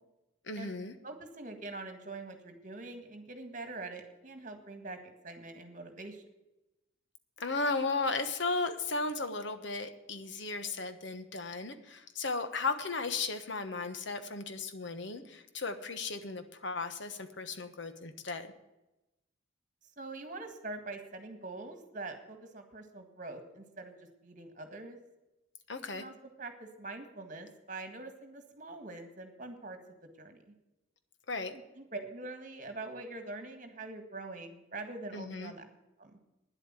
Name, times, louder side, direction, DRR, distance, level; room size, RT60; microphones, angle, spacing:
voice 1, 0.5-0.9 7.4-18.5 25.7-26.0 31.3-31.5 35.1-35.5, left 3 dB, 60° left, 9 dB, 1.2 m, -35 dB
voice 2, 1.0-6.2 20.0-25.0 25.9-30.5 31.5-35.6 36.0-36.1, right 2 dB, 40° right, 6 dB, 1.7 m, -44 dB
10.0 x 8.2 x 9.0 m, 0.97 s
head